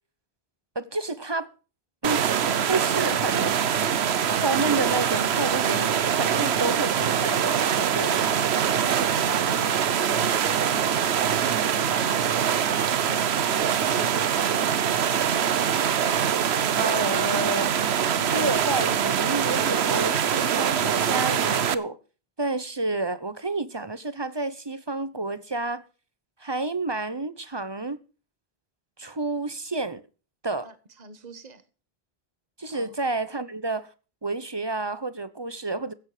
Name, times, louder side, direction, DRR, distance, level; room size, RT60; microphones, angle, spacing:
voice 1, 0.7-1.5 2.0-3.6 4.3-8.2 16.8-17.8 18.2-22.0 22.4-25.8 26.4-28.0 29.0-30.0 30.4-30.7 32.6-33.9 34.2-35.9, right 2 dB, 25° right, 0.9 m, -30 dB
sound 1, 2.0-21.7, right 8 dB, 85° right, 1.1 m, -24 dB
voice 2, 8.7-11.2 30.6-31.6 32.7-32.9, right 3 dB, 40° right, 1.5 m, -43 dB
15.5 x 9.6 x 5.0 m
omnidirectional pair, 1.1 m